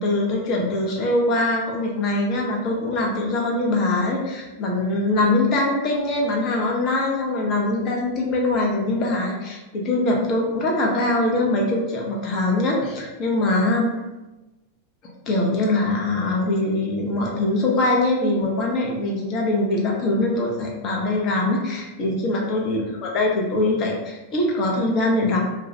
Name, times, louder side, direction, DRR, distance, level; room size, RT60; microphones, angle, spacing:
voice 1, 0.0-13.9 15.3-25.4, left 2 dB, 35° left, -1 dB, 0.6 m, -22 dB
2.2 x 2.1 x 2.7 m, 1.1 s
figure-of-eight pair, 90°, 0 cm